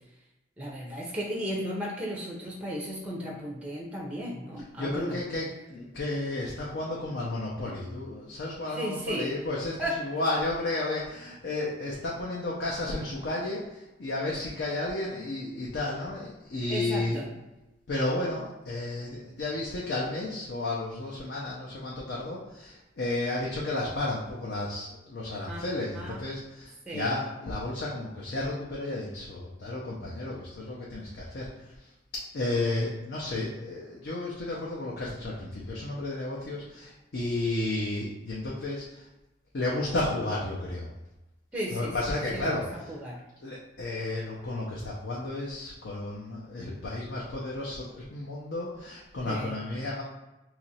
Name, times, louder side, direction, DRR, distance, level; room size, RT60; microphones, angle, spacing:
voice 1, 0.6-5.2 8.7-9.3 9.8-10.0 16.7-17.2 25.5-25.6 25.9-26.2 26.9-27.1 41.5-41.9 42.3-42.6 43.0-43.2 49.2-49.6, equal, 5° right, -3 dB, 0.5 m, -34 dB
voice 2, 4.8-17.3 17.9-39.1 39.5-40.9 41.7-42.9 43.4-50.0, left 2 dB, 60° left, -4 dB, 0.6 m, -32 dB
3.0 x 2.4 x 4.1 m, 1.0 s
head